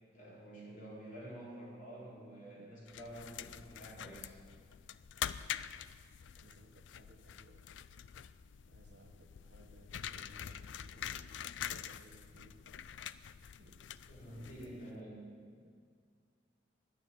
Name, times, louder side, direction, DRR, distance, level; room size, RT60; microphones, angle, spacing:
voice 1, 0.1-4.4 14.1-15.2, right 1 dB, 45° left, -6 dB, 4.6 m, -49 dB
sound 1, 2.9-14.9, left 9 dB, 85° left, 0.4 m, -45 dB
voice 2, 6.4-7.7 8.7-11.4 11.7-12.6 13.6-13.8 14.3-15.1 15.6-15.7, right 1 dB, 65° right, 3 dB, 1.4 m, -60 dB
11.5 x 9.7 x 8.6 m, 2.1 s
head